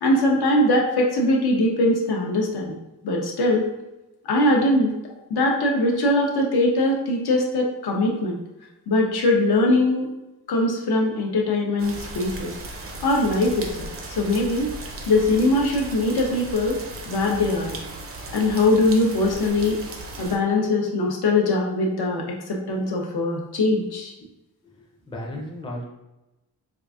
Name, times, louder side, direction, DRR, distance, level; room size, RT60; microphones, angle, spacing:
voice 1, 0.0-2.8 3.0-3.7 4.3-4.9 5.3-8.4 8.9-10.1 10.5-12.5 13.0-13.9 14.2-14.7 15.1-16.8 17.0-17.7 18.3-19.8 20.2-24.1, left 2 dB, 75° left, 0 dB, 0.8 m, -21 dB
sound 1, 11.8-20.4, right 2 dB, 35° right, 0.5 m, -36 dB
voice 2, 24.6-25.8, left 1 dB, 15° left, -2 dB, 0.5 m, -35 dB
4.7 x 2.4 x 2.4 m, 0.95 s
wide cardioid pair, 165°, 38 cm